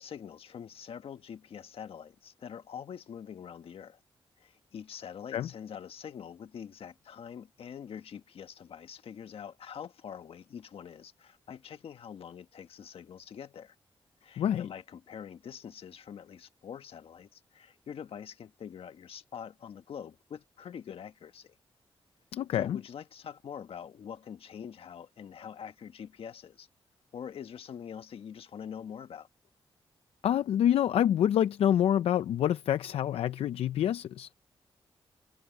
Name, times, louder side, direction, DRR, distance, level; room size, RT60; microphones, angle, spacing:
voice 1, 0.0-4.0 4.4-13.7 14.2-21.6 22.5-26.7 27.1-29.3, left 8 dB, 75° left, 1.5 m, -45 dB
voice 2, 14.4-14.7 22.3-22.8 30.2-34.3, left 10 dB, 90° left, 0.6 m, -27 dB
cardioid pair, 70°, 10 cm